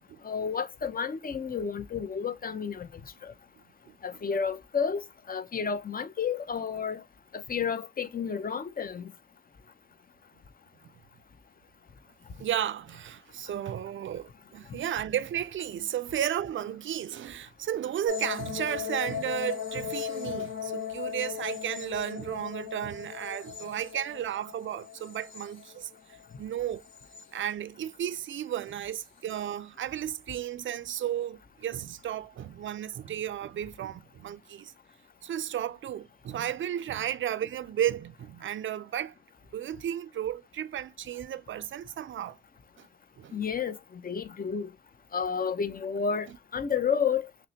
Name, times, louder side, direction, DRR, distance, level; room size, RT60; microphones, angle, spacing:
voice 1, 0.2-2.9 3.2-3.3 4.0-5.0 5.3-7.0 7.3-9.1 43.3-44.7 45.1-47.3, left 6 dB, 45° left, 0.7 m, -31 dB
voice 2, 12.4-25.9 26.4-26.8 27.3-34.7 35.2-39.1 39.5-42.4 42.8-42.9 43.2-43.3, right 10 dB, 75° right, 0.4 m, -33 dB
sound 1, 18.1-26.2 26.7-27.5 28.7-29.0, left 9 dB, 75° left, 1.7 m, -37 dB
5.8 x 2.1 x 2.8 m
cardioid pair, 65°, 20 cm